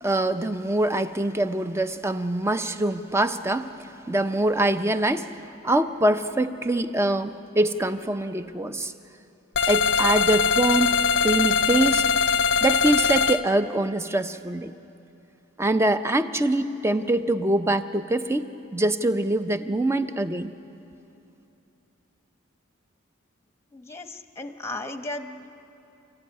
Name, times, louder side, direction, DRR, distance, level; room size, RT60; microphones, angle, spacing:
voice 1, 0.0-5.3 5.6-8.9 9.7-12.0 12.6-14.7 15.6-20.5, right 1 dB, 15° right, 10 dB, 0.7 m, -24 dB
sound 1, 9.5-13.4, left 6 dB, 55° left, 0.6 m, -22 dB
voice 2, 23.7-24.1 24.4-25.5, left 2 dB, 10° left, 7 dB, 0.9 m, -35 dB
29.5 x 15.0 x 9.6 m, 2.8 s
head